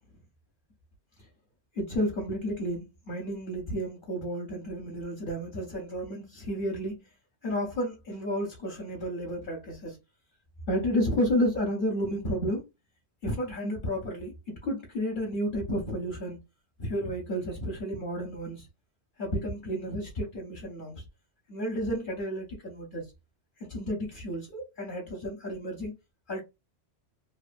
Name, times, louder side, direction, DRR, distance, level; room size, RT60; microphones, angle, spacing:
voice 1, 1.7-7.0 7.4-10.0 10.7-12.6 13.2-16.4 16.8-18.7 19.2-21.0 21.5-23.0 23.6-25.9 26.3-26.4, equal, 55° left, 0.8 m, -31 dB
2.7 x 2.2 x 2.4 m
omnidirectional pair, 1.1 m